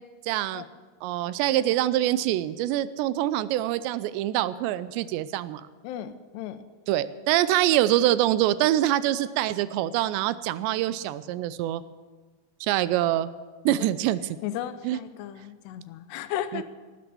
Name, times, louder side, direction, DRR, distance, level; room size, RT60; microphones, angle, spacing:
voice 1, 0.3-0.6 1.0-5.6 6.9-11.8 12.6-13.3 13.7-14.4 14.8-15.0 16.5-16.6, right 13 dB, 90° right, 15 dB, 2.8 m, -25 dB
voice 2, 5.8-6.6 13.8-13.9 14.4-16.6, left 11 dB, 80° left, 11 dB, 2.8 m, -35 dB
18.0 x 9.8 x 6.9 m, 1.4 s
omnidirectional pair, 4.9 m